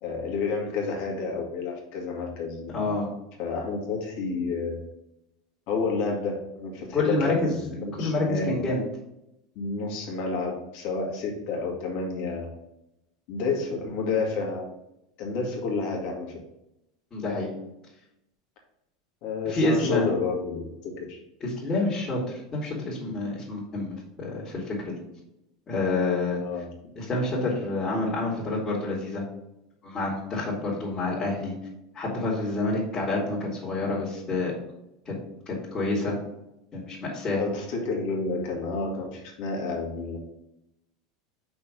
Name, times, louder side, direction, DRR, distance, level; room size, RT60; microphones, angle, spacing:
voice 1, 0.0-3.0 3.4-4.8 5.7-8.6 9.6-12.5 13.3-14.7 15.2-16.4 19.2-21.2 26.4-26.7 37.4-40.2, left 4 dB, 60° left, 0 dB, 2.0 m, -30 dB
voice 2, 2.7-3.1 6.9-8.8 17.1-17.5 19.4-20.1 21.4-22.2 22.5-24.9 25.7-26.4 27.0-29.2 29.8-31.5 31.9-34.5 35.0-35.2 35.5-36.1 36.7-37.4, left 2 dB, 30° left, -6 dB, 2.5 m, -28 dB
5.9 x 4.4 x 5.3 m, 0.87 s
hypercardioid pair, 105°, 2 cm